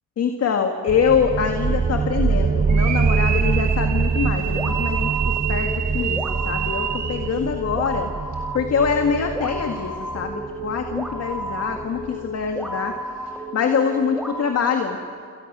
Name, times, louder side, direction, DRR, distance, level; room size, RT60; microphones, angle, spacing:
voice 1, 0.2-8.1 8.5-13.0 13.5-15.0, left 6 dB, 55° left, 5 dB, 1.9 m, -24 dB
sound 1, 0.9-12.3, right 5 dB, 25° right, 0.7 m, -25 dB
sound 2, 2.7-7.4, right 11 dB, 70° right, 1.4 m, -29 dB
sound 3, 4.3-14.4, right 1 dB, ahead, 2.4 m, -32 dB
28.5 x 28.0 x 6.2 m, 2.4 s
cardioid pair, 90°, 30 cm